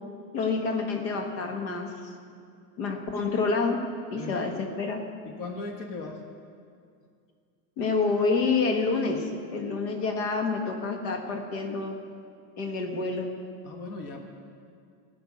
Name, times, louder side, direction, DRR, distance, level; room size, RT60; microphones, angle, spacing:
voice 1, 0.3-2.1 2.8-3.8 4.1-5.0 7.8-12.0 12.6-13.3, left 4 dB, 90° left, 3 dB, 1.7 m, -28 dB
voice 2, 4.1-4.4 5.2-6.2 13.6-14.2, left 3 dB, 45° left, 3 dB, 1.5 m, -38 dB
16.0 x 6.0 x 8.5 m, 2.3 s
supercardioid pair, 140°, 45 cm